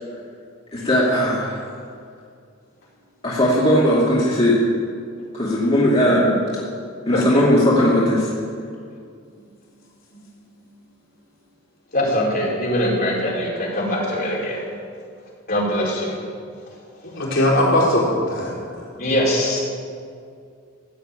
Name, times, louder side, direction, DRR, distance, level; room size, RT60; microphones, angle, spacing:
voice 1, 0.7-1.6 3.2-4.6 5.3-6.3 7.1-8.3, equal, 30° left, -7 dB, 2.5 m, -18 dB
voice 2, 7.1-7.4 11.9-14.7 15.5-16.2 17.6-17.7 19.0-19.6, equal, 45° left, -5 dB, 4.8 m, -22 dB
voice 3, 17.1-18.8, left 1 dB, 65° left, -5 dB, 4.5 m, -20 dB
15.0 x 8.0 x 9.1 m, 2.3 s
head